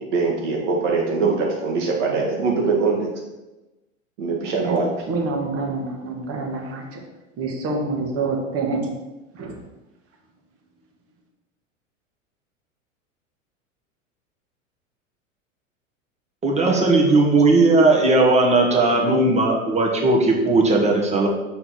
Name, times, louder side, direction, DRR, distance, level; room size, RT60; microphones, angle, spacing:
voice 1, 0.0-3.1 4.2-4.9, right 4 dB, 65° right, 0 dB, 1.8 m, -22 dB
voice 2, 4.6-7.0 7.4-8.9 9.3-9.6, right 3 dB, 35° right, 1 dB, 1.5 m, -27 dB
voice 3, 16.4-21.3, right 2 dB, 15° right, -1 dB, 1.4 m, -17 dB
6.5 x 4.3 x 4.1 m, 1.0 s
hypercardioid pair, 95°, 40 cm